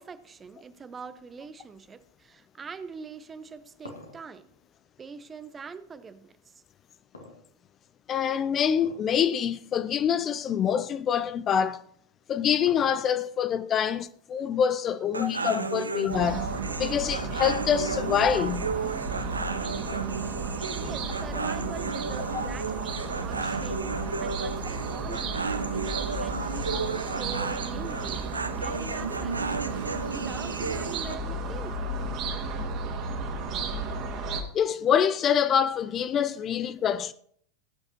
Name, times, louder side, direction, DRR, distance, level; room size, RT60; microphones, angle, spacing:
voice 1, 0.0-4.5 5.0-6.6 15.0-15.1 20.7-32.0, right 5 dB, 20° right, 0.8 m, -43 dB
sound 1, 3.4-5.8 7.1-8.0 8.7-9.2 9.5-9.6 10.4-10.5 11.9-13.4, left 2 dB, 70° left, 2.2 m, -47 dB
voice 2, 8.1-11.8 12.3-16.5 16.8-18.7 34.5-37.1, left 8 dB, 25° left, 0.5 m, -25 dB
sound 2, 15.1-31.2, right 4 dB, 80° right, 0.7 m, -33 dB
sound 3, 16.1-34.4, right 3 dB, 35° right, 2.2 m, -34 dB
18.5 x 8.9 x 3.0 m
figure-of-eight pair, 90°, 0 cm